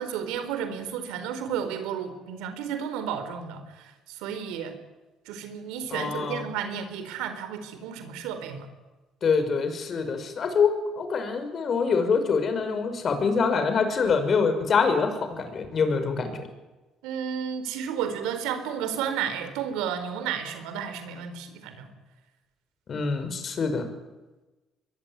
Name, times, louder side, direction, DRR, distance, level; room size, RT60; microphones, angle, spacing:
voice 1, 0.0-4.8 5.3-8.7 17.0-21.9, right 8 dB, 90° right, 9 dB, 4.2 m, -32 dB
voice 2, 5.9-6.5 9.2-16.4 22.9-23.9, left 5 dB, 50° left, 8 dB, 6.1 m, -25 dB
24.0 x 22.0 x 9.8 m, 1.1 s
supercardioid pair, 80°, 0 cm